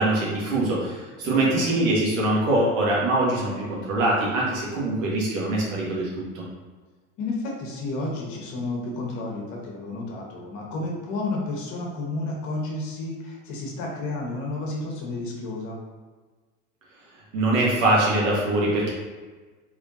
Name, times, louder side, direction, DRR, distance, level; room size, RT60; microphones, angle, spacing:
voice 1, 0.0-6.4 17.3-18.9, right 2 dB, 80° right, -5 dB, 1.4 m, -23 dB
voice 2, 1.2-1.6 7.2-15.8, left 2 dB, 50° left, -1 dB, 1.1 m, -31 dB
3.4 x 3.2 x 2.6 m, 1.4 s
hypercardioid pair, 100°, 38 cm